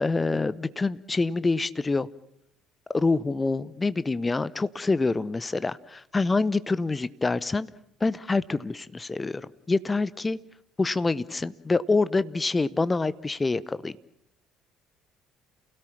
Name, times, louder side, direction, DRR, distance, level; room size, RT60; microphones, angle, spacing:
voice 1, 0.0-2.1 2.9-7.7 8.0-10.4 10.8-13.9, left 3 dB, 20° left, 18 dB, 0.9 m, -26 dB
29.0 x 17.5 x 7.3 m, 0.75 s
figure-of-eight pair, 55°, 0 cm